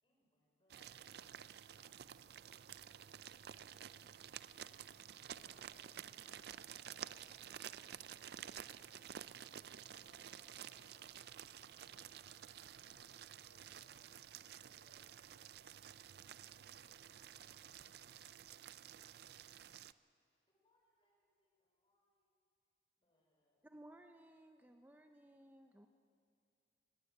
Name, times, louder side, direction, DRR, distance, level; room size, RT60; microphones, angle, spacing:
voice 1, 0.0-3.5 8.4-8.8 10.0-10.1 13.8-14.0 14.3-14.7 17.4-18.3 20.1-22.4 23.0-23.7, left 1 dB, 25° left, -2 dB, 5.0 m, -81 dB
sound 1, 0.7-19.9, right 9 dB, 55° right, 0.4 m, -52 dB
voice 2, 3.9-4.7 5.2-8.0 9.8-11.1 11.4-14.0 14.3-15.7, left 1 dB, 65° left, -1 dB, 6.2 m, -73 dB
voice 3, 23.6-25.9, right 1 dB, 10° right, 5 dB, 0.6 m, -59 dB
19.5 x 16.5 x 8.0 m, 2.3 s
head